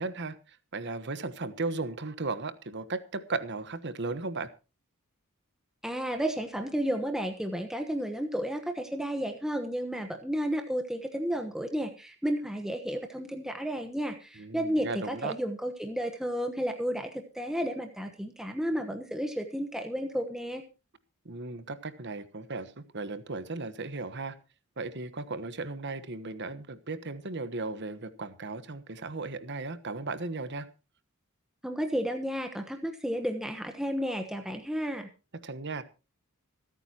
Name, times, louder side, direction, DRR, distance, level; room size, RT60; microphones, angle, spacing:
voice 1, 0.0-4.5 14.4-15.3 21.2-24.3 24.8-30.7 35.4-35.8, right 3 dB, 50° right, 13 dB, 1.2 m, -36 dB
voice 2, 5.8-20.6 31.6-35.1, equal, ahead, 5 dB, 1.1 m, -32 dB
25.5 x 9.1 x 3.0 m, 0.32 s
head